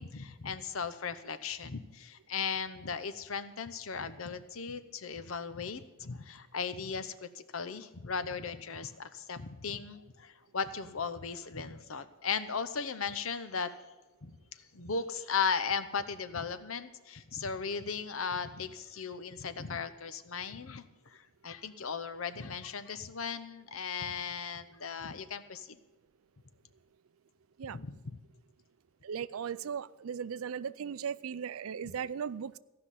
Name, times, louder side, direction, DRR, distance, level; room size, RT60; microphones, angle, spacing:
voice 1, 0.0-13.9 14.2-14.3 14.7-25.8 27.7-28.0, left 5 dB, 75° left, 0.8 m, -37 dB
voice 2, 29.0-32.6, right 7 dB, 80° right, 0.4 m, -37 dB
15.5 x 5.9 x 9.9 m
head